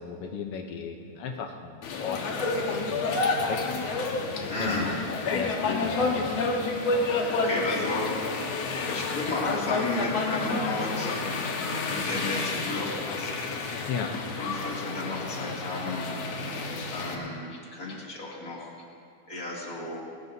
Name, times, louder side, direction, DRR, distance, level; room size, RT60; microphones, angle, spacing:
voice 1, 0.0-3.6 4.6-5.0 5.3-6.3 13.9-14.1, left 6 dB, 85° left, 3 dB, 1.2 m, -35 dB
sound 1, 1.8-17.1, left 3 dB, 60° left, 2.2 m, -29 dB
voice 2, 4.5-4.9 7.0-8.1 8.9-11.1 11.9-13.3 13.8-13.9 14.3-16.2 16.9-18.7 19.3-20.0, left 2 dB, 25° left, -4 dB, 2.8 m, -33 dB
22.0 x 19.5 x 2.8 m, 2.4 s
omnidirectional pair, 3.8 m